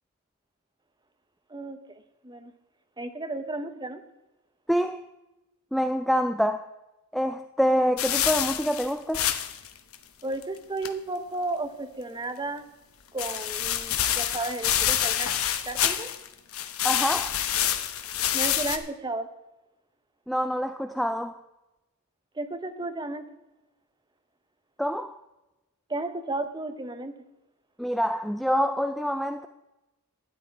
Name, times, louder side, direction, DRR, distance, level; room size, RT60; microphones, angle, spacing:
voice 1, 3.0-4.0 10.2-12.6 13.1-15.3 15.6-16.1 18.3-19.3 22.4-23.3 25.9-27.1, right 2 dB, 20° right, 0.9 m, -33 dB
voice 2, 4.7-5.0 5.7-6.7 7.1-9.3 16.8-17.4 20.3-21.3 24.8-25.2 27.8-29.5, equal, ahead, 0.3 m, -26 dB
sound 1, 8.0-9.7 9.9-10.0 10.4-10.5 10.8-10.9 13.2-16.3 16.5-18.8, left 10 dB, 70° left, 0.9 m, -27 dB
12.5 x 9.7 x 4.5 m
head